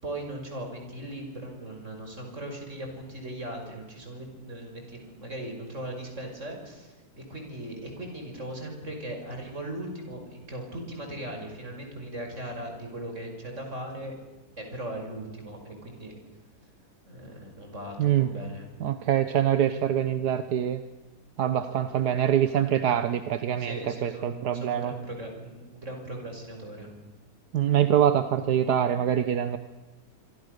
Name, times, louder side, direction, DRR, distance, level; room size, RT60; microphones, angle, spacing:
voice 1, 0.0-14.1 14.6-16.1 17.1-18.7 22.5-23.0 23.6-26.9, right 1 dB, 50° right, 3 dB, 6.0 m, -38 dB
voice 2, 18.0-18.3 18.8-20.8 21.4-24.9 27.5-29.6, right 10 dB, 85° right, 10 dB, 1.6 m, -24 dB
26.5 x 24.5 x 6.6 m, 1.1 s
omnidirectional pair, 1.7 m